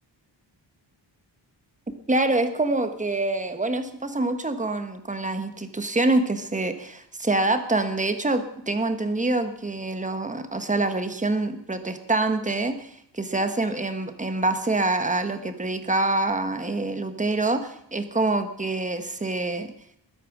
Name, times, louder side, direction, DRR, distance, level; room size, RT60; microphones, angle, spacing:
voice 1, 2.1-19.7, right 2 dB, 15° right, 8 dB, 1.3 m, -26 dB
20.5 x 9.3 x 6.0 m, 0.72 s
wide cardioid pair, 180°, 45 cm